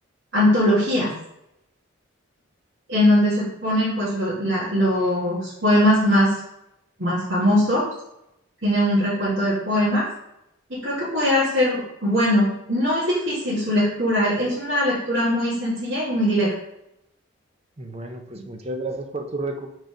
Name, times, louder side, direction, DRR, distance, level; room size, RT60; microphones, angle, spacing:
voice 1, 0.3-1.1 2.9-6.4 7.0-7.8 8.6-10.1 10.8-16.5 18.4-18.5, equal, 65° right, -10 dB, 2.1 m, -21 dB
voice 2, 17.8-19.7, right 2 dB, 30° right, 5 dB, 0.7 m, -31 dB
5.1 x 4.0 x 5.1 m, 0.82 s
head